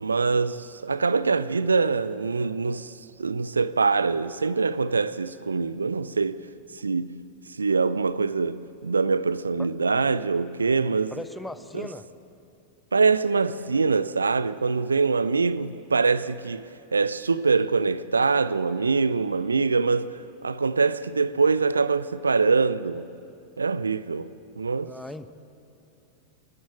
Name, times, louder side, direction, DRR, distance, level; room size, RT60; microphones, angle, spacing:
voice 1, 0.0-6.5 6.7-7.2 7.5-11.1 11.7-11.9 12.9-23.1 23.6-24.9, right 4 dB, 75° right, 0.5 m, -24 dB
voice 2, 11.1-12.1 24.8-25.3, left 2 dB, 5° left, 1.0 m, -38 dB
29.5 x 13.5 x 8.7 m
figure-of-eight pair, 90°, 0 cm